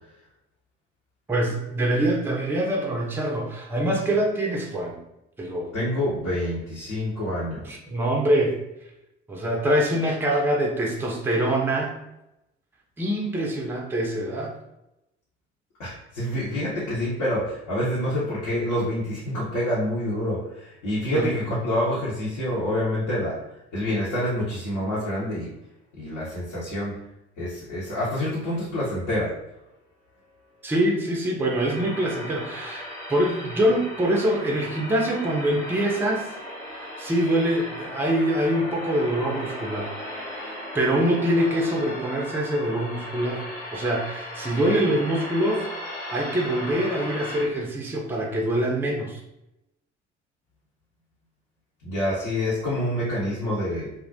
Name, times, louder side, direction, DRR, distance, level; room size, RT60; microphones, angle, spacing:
voice 1, 1.3-5.0 5.4-5.7 7.7-8.6 9.3-12.0 13.0-14.5 21.1-21.3 30.6-36.3 36.7-39.9 40.3-43.5 43.7-45.7 46.1-49.2, right 1 dB, 5° right, -1 dB, 0.4 m, -24 dB
voice 2, 5.7-7.7 15.8-23.4 23.7-25.5 25.9-27.0 27.4-29.3 51.8-53.9, left 1 dB, 55° left, -8 dB, 0.8 m, -27 dB
sound 1, 31.6-47.4, left 1 dB, 10° left, 0.8 m, -37 dB
2.4 x 2.0 x 2.6 m, 0.89 s
figure-of-eight pair, 55°, 34 cm